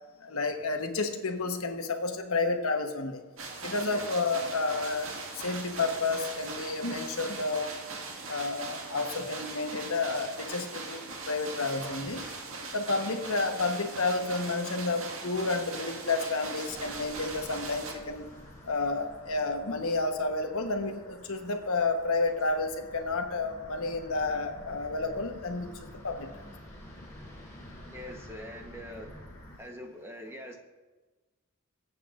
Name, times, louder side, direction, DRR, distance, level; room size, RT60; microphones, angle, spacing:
voice 1, 0.2-3.2 3.6-7.8 8.3-12.2 12.7-18.2 18.6-25.7 26.0-26.5, left 3 dB, 75° left, 5 dB, 1.2 m, -31 dB
sound 1, 3.4-17.9, right 3 dB, 70° right, 1.9 m, -40 dB
sound 2, 16.7-29.6, left 1 dB, 15° left, 3.0 m, -49 dB
voice 2, 27.9-29.2 29.6-30.6, equal, 10° right, 2 dB, 1.0 m, -43 dB
23.5 x 8.3 x 2.5 m, 1.2 s
head